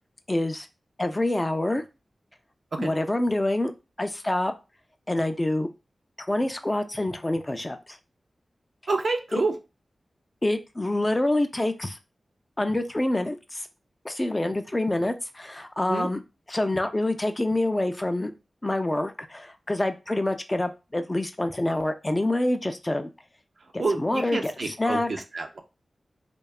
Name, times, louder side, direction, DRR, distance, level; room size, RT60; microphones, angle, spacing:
voice 1, 0.3-0.7 1.0-1.8 2.8-3.7 4.0-4.5 5.1-5.7 6.2-8.0 9.3-9.4 10.4-12.0 12.6-13.7 14.0-16.2 16.5-18.3 18.6-23.1 23.7-25.1, left 1 dB, 25° left, 8 dB, 0.3 m, -26 dB
voice 2, 8.9-9.5 15.9-16.1 23.8-25.6, right 3 dB, 65° right, 4 dB, 0.4 m, -28 dB
2.7 x 2.2 x 2.3 m, 0.28 s
wide cardioid pair, 65°, 0 cm